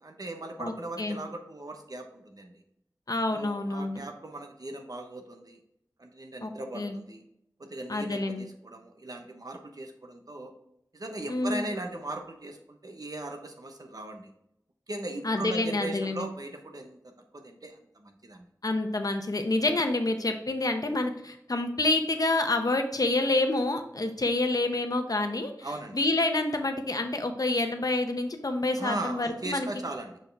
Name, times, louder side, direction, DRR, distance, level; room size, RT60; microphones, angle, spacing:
voice 1, 0.0-2.6 3.3-5.6 6.0-7.2 7.6-10.5 10.9-14.3 14.9-18.5 25.6-26.0 28.8-30.2, right 1 dB, 60° right, 4 dB, 1.0 m, -38 dB
voice 2, 3.1-4.0 6.4-6.5 6.7-7.0 7.9-8.4 11.3-11.7 15.2-16.2 18.6-25.5 25.9-29.7, left 2 dB, 60° left, 6 dB, 0.8 m, -28 dB
6.0 x 4.6 x 3.4 m, 0.77 s
wide cardioid pair, 55°, 7 cm